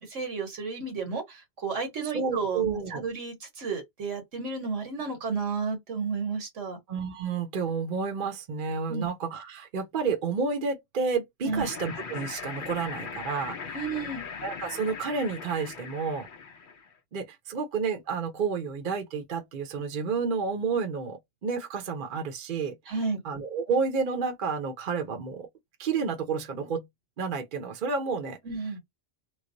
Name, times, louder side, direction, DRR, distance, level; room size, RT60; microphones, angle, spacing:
voice 1, 0.0-6.8 8.9-9.1 11.4-11.7 13.7-14.3 22.9-23.2 28.4-28.8, right 4 dB, 85° right, 1.6 m, -32 dB
voice 2, 2.1-3.0 6.9-13.8 14.4-16.3 17.1-22.8 23.2-25.5 25.8-26.9 27.2-28.4, right 5 dB, 50° right, 0.8 m, -30 dB
sound 1, 11.5-16.9, left 5 dB, 55° left, 0.7 m, -39 dB
3.2 x 2.0 x 3.8 m
omnidirectional pair, 1.2 m